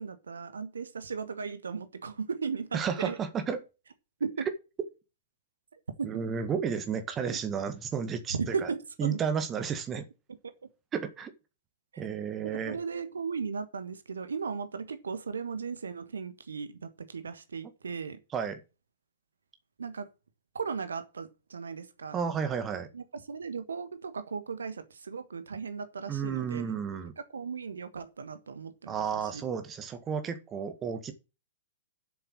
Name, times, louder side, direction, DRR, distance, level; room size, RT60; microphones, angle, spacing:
voice 1, 0.0-3.2 4.2-4.5 6.0-6.1 7.2-7.4 8.3-9.2 10.4-10.5 11.9-12.0 12.4-18.2 19.8-20.1 20.5-22.2 22.9-26.6 27.3-29.0 29.3-29.4, right 5 dB, 70° right, 1.3 m, -36 dB
voice 2, 2.7-3.6 6.0-8.7 9.0-10.0 10.9-11.3 12.0-12.8 18.3-18.6 22.1-22.9 26.1-27.1 28.9-31.1, right 7 dB, 20° right, 1.7 m, -32 dB
7.8 x 6.8 x 7.6 m
figure-of-eight pair, 105°, 0 cm